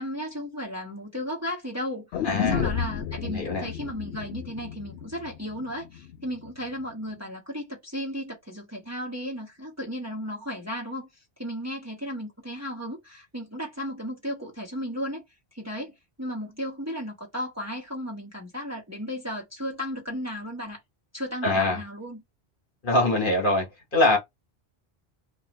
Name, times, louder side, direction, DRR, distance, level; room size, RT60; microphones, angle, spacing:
voice 1, 0.0-11.1 11.4-15.2 15.5-15.9 16.2-20.8 21.1-22.2, equal, 15° right, 1.0 m, -34 dB
sound 1, 2.1-6.2 6.5-6.6, left 9 dB, 75° left, 0.8 m, -32 dB
voice 2, 2.2-2.6 3.2-3.7 21.4-21.8 22.8-23.7 23.9-24.2, left 2 dB, 55° left, 1.4 m, -23 dB
3.1 x 2.5 x 3.0 m
omnidirectional pair, 1.1 m